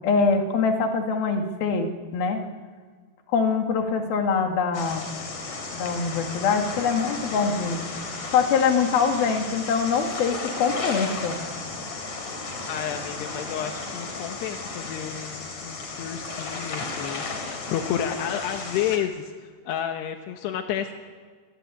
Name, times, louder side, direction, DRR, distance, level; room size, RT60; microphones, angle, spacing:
voice 1, 0.0-2.4 3.3-5.1 5.7-7.8 8.3-11.5, left 5 dB, 65° left, 4 dB, 4.0 m, -24 dB
sound 1, 4.7-19.0, left 3 dB, 45° left, 4.8 m, -34 dB
voice 2, 12.7-19.3 19.7-20.9, left 9 dB, 85° left, 4 dB, 3.4 m, -31 dB
28.5 x 23.5 x 8.5 m, 1.5 s
omnidirectional pair, 4.7 m